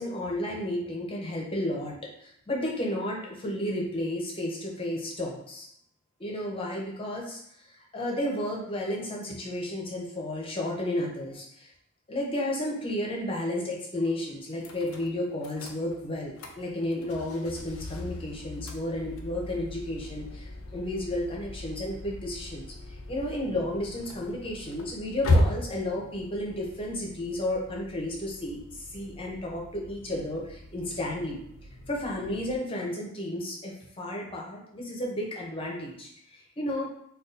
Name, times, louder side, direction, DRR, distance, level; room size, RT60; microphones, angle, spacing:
voice 1, 0.0-5.7 6.2-7.4 7.9-11.7 12.1-31.4 31.9-36.9, left 1 dB, 25° left, -2 dB, 0.6 m, -32 dB
sound 1, 14.6-32.6, left 1 dB, 70° left, 0.4 m, -36 dB
2.5 x 2.3 x 3.8 m, 0.71 s
head